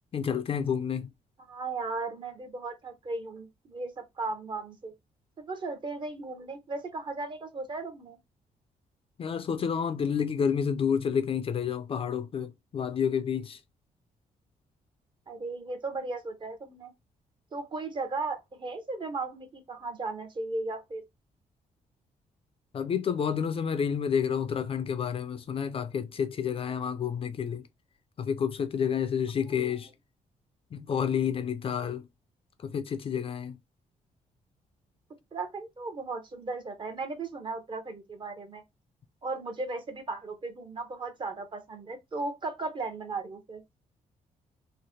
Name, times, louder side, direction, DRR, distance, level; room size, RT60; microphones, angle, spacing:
voice 1, 0.1-1.1 9.2-13.6 22.7-27.7 28.2-29.9 30.7-32.1 32.6-33.6, left 7 dB, 40° left, 0.4 m, -29 dB
voice 2, 1.5-4.9 5.4-8.2 15.3-16.9 17.5-21.0 35.3-38.6 39.2-43.6, right 3 dB, 35° right, 0.9 m, -36 dB
3.2 x 2.1 x 4.1 m
cardioid pair, 130°, 14 cm